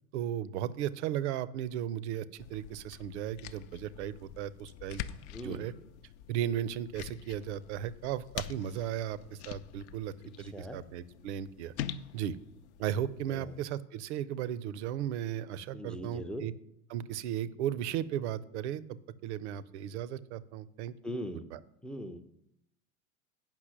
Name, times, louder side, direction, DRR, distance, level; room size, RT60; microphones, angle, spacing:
voice 1, 0.1-5.0 5.4-5.7 6.3-11.7 12.1-12.4 12.8-16.5 16.9-21.1 21.5-21.6, right 10 dB, 50° right, 18 dB, 0.6 m, -36 dB
sound 1, 2.4-13.6, left 10 dB, 50° left, 0.5 m, -45 dB
voice 2, 5.3-5.7 10.4-10.8 13.3-13.6 15.7-16.4 21.0-21.5 21.8-22.2, equal, ahead, 9 dB, 0.4 m, -40 dB
9.0 x 5.9 x 5.8 m, 0.78 s
figure-of-eight pair, 80°, 45 cm